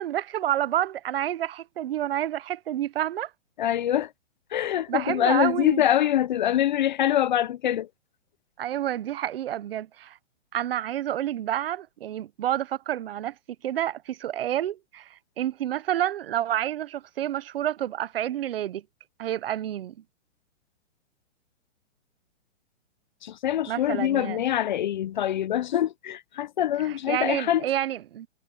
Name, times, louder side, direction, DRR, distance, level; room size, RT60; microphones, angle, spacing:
voice 1, 0.0-3.3 4.9-5.8 8.6-10.2 10.5-13.3 13.6-18.8 19.2-20.0 23.7-24.4 26.8-28.3, right 12 dB, 50° right, 0.8 m, -29 dB
voice 2, 3.6-4.1 4.5-7.9 23.2-27.7, left 11 dB, 40° left, 0.6 m, -24 dB
hypercardioid pair, 160°, 37 cm